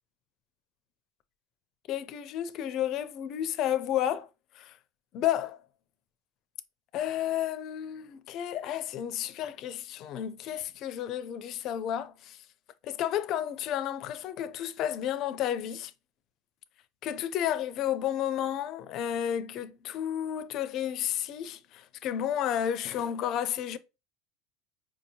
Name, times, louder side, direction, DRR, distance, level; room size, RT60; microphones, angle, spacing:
voice 1, 1.9-4.3 4.6-4.7 5.1-5.6 6.9-12.4 12.8-15.9 17.0-23.8, left 10 dB, 45° left, 0.4 m, -32 dB
4.8 x 2.7 x 2.7 m
supercardioid pair, 135°, 0 cm